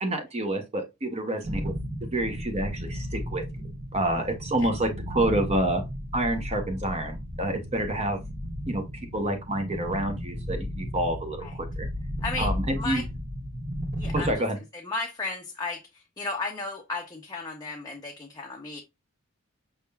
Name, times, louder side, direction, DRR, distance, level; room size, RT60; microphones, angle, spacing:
voice 1, 0.0-1.7 2.1-3.4 3.9-5.8 6.1-8.2 8.7-8.8 9.1-11.9 12.4-13.0 14.1-14.6, right 1 dB, 30° right, 0.7 m, -28 dB
sound 1, 1.4-14.4, equal, 50° right, 1.4 m, -34 dB
voice 2, 12.2-13.0 14.0-14.4 14.7-18.8, left 3 dB, 20° left, 0.5 m, -34 dB
5.3 x 3.5 x 2.2 m
head